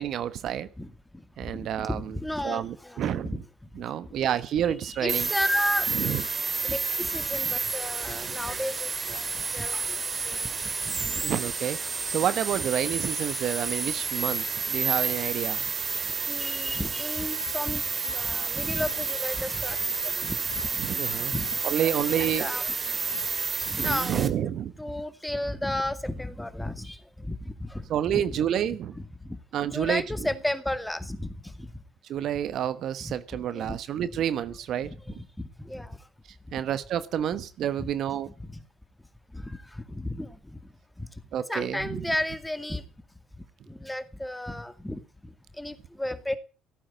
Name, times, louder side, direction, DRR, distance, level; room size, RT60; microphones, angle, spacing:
voice 1, 0.0-0.7 1.4-2.1 2.4-3.4 3.8-5.3 5.9-6.2 8.3-8.4 10.9-11.8 12.1-15.7 20.8-21.3 21.6-22.7 23.8-24.7 27.9-28.9 29.5-30.0 32.1-34.9 36.5-38.3 41.3-41.8, right 10 dB, 65° right, 1.1 m, -29 dB
voice 2, 0.8-3.7 4.0-4.2 4.7-6.2 6.6-10.5 10.8-11.3 16.3-20.8 21.1-22.6 23.1-23.3 23.7-24.5 24.8-28.5 28.9-29.4 29.7-31.8 33.0-33.2 33.5-33.8 35.0-36.1 37.8-37.9 38.4-38.6 39.3-40.6 41.0-41.2 41.5-42.9 43.7-46.4, left 1 dB, 5° left, 2.3 m, -34 dB
sound 1, 5.1-24.3, right 4 dB, 30° right, 2.1 m, -30 dB
16.5 x 9.0 x 8.9 m
supercardioid pair, 70°, 0 cm